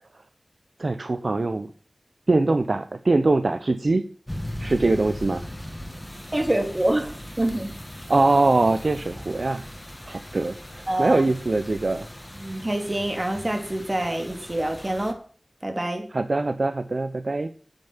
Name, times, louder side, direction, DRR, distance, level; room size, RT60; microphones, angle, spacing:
voice 1, 0.8-1.7 2.3-4.0 4.6-5.4 8.1-9.6 10.1-12.1 16.1-17.5, right 2 dB, 65° right, 10 dB, 0.8 m, -22 dB
sound 1, 4.3-15.1, left 1 dB, 20° left, 2.3 m, -39 dB
voice 2, 6.3-7.1 7.4-7.8 10.1-10.2 10.9-11.2 12.4-15.2 15.6-16.1, right 1 dB, 35° right, 5 dB, 3.3 m, -26 dB
9.3 x 9.2 x 7.3 m, 0.43 s
wide cardioid pair, 40°, 0 cm